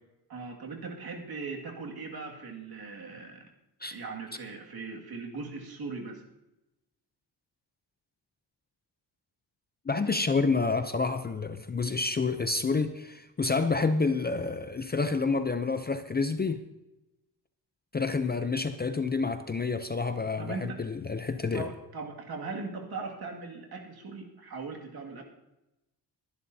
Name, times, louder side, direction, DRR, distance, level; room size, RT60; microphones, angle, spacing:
voice 1, 0.3-3.4 3.9-6.2 20.4-20.8 21.5-25.2, right 4 dB, 60° right, 1 dB, 2.2 m, -39 dB
voice 2, 9.9-16.6 17.9-21.7, left 4 dB, 25° left, 9 dB, 0.5 m, -28 dB
22.0 x 11.5 x 2.7 m, 0.94 s
wide cardioid pair, 155°, 42 cm